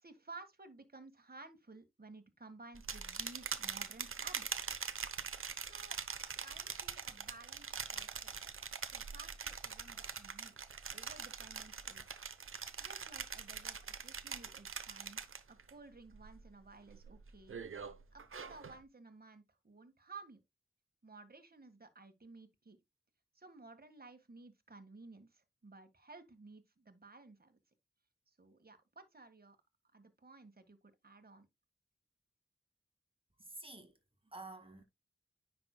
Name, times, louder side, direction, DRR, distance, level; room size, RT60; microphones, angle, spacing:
voice 1, 0.0-4.5 5.6-6.0 6.4-8.3 8.9-10.5 10.9-12.1 12.8-15.2 15.5-17.6 18.1-20.4 21.0-22.8 23.3-27.6 28.3-29.6 29.9-30.8 31.0-31.5, right 3 dB, 45° right, 1.7 m, -55 dB
sound 1, 2.7-15.7 16.1-16.5 16.9-18.8, right 6 dB, 75° right, 0.9 m, -43 dB
voice 2, 33.4-34.0 34.2-34.8, right 2 dB, 25° right, 2.2 m, -50 dB
9.8 x 6.1 x 2.2 m
cardioid pair, 50°, 21 cm